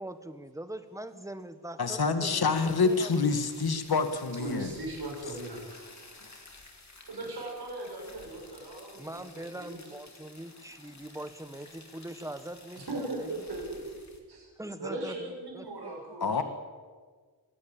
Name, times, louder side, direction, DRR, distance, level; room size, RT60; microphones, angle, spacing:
voice 1, 0.0-3.3 9.0-13.3 14.6-15.9, right 1 dB, 10° right, 10 dB, 1.4 m, -42 dB
voice 2, 1.8-4.7 16.2-16.4, left 4 dB, 65° left, 8 dB, 1.8 m, -27 dB
sound 1, 2.5-14.2, left 3 dB, 45° left, 3.4 m, -52 dB
voice 3, 4.4-5.9 7.1-9.2 9.5-9.8 12.8-13.8 14.3-14.5 14.8-16.4, right 2 dB, 75° right, -2 dB, 6.8 m, -38 dB
24.0 x 17.5 x 9.0 m, 1.5 s
wide cardioid pair, 110°, 40 cm